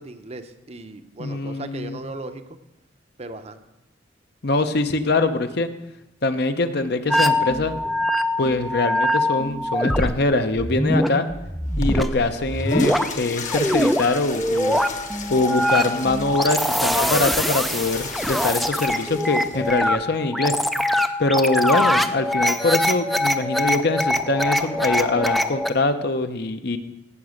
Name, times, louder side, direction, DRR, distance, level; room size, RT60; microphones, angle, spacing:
voice 1, 0.0-2.6 3.2-3.6, right 2 dB, 35° right, 8 dB, 0.7 m, -37 dB
voice 2, 1.2-2.0 4.4-5.7 6.2-7.8 8.4-11.3 11.8-14.8 15.3-20.5 21.2-26.8, left 2 dB, 60° left, 8 dB, 0.8 m, -23 dB
sound 1, 7.1-10.2 10.6-13.1 13.5-25.7, left 1 dB, ahead, 0.4 m, -23 dB
Water / Toilet flush, 11.7-20.0, left 4 dB, 40° left, 1.2 m, -34 dB
17.0 x 6.0 x 6.5 m, 0.94 s
head